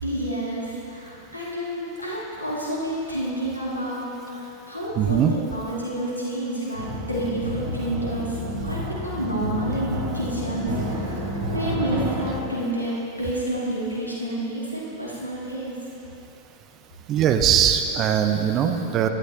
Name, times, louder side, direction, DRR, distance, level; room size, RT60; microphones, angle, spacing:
voice 1, 0.0-11.2 11.5-15.7, right 1 dB, 85° left, -6 dB, 2.4 m, -29 dB
voice 2, 5.0-5.3 17.1-19.1, right 8 dB, 35° right, 6 dB, 0.7 m, -20 dB
sound 1, 6.7-12.3, equal, 65° right, 2.1 m, -30 dB
16.0 x 11.5 x 2.9 m, 2.9 s
figure-of-eight pair, 90°, 0 cm